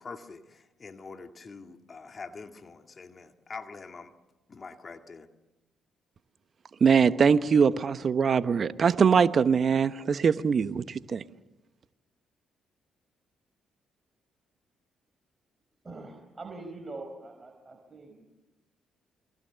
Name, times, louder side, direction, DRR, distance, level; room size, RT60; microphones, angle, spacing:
voice 1, 0.0-4.1 4.5-5.3, left 4 dB, 40° left, 2.2 m, -44 dB
voice 2, 6.8-11.2, right 6 dB, 50° right, 1.1 m, -22 dB
voice 3, 15.8-18.3, right 2 dB, 30° right, 4.7 m, -43 dB
29.0 x 23.5 x 7.0 m
hypercardioid pair, 45°, 0 cm